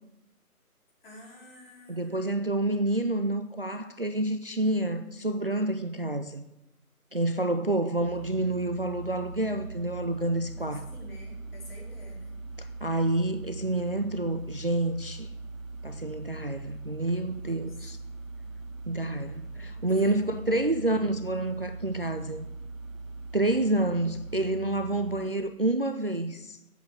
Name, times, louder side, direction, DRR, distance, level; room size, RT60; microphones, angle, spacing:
voice 1, 1.0-2.5 7.5-8.0 10.5-12.3 17.3-17.9 19.5-20.1 20.4-21.1, equal, 40° left, 4.6 m, -50 dB
voice 2, 1.9-6.4 7.1-10.8 12.6-15.3 15.8-18.0 18.9-22.5 23.3-26.6, right 2 dB, 40° right, 0.4 m, -28 dB
sound 1, 8.0-25.2, right 3 dB, 60° right, 1.1 m, -41 dB
9.1 x 8.1 x 7.8 m
figure-of-eight pair, 155°, 45 cm